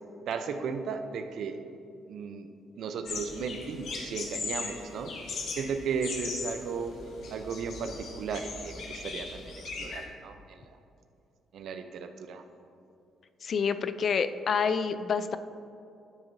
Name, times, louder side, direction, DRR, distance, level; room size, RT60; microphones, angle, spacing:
voice 1, 0.2-1.6 2.1-2.5 2.8-7.0 7.3-10.7 11.5-12.4, right 5 dB, 70° right, 8 dB, 0.6 m, -35 dB
sound 1, 3.0-10.0, left 4 dB, 70° left, 1.3 m, -39 dB
voice 2, 13.4-15.4, left 6 dB, 50° left, 12 dB, 0.4 m, -28 dB
12.0 x 6.8 x 2.7 m, 2.6 s
cardioid pair, 90°, 0 cm